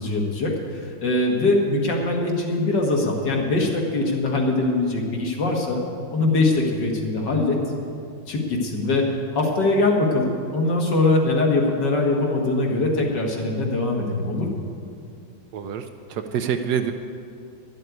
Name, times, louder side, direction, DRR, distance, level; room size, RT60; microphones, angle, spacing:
voice 1, 0.0-5.8 6.1-7.6 8.3-9.1 9.3-14.6, left 2 dB, 65° left, 0 dB, 2.3 m, -22 dB
voice 2, 15.5-16.9, right 8 dB, 70° right, 7 dB, 1.1 m, -26 dB
12.0 x 7.7 x 9.4 m, 2.4 s
omnidirectional pair, 2.0 m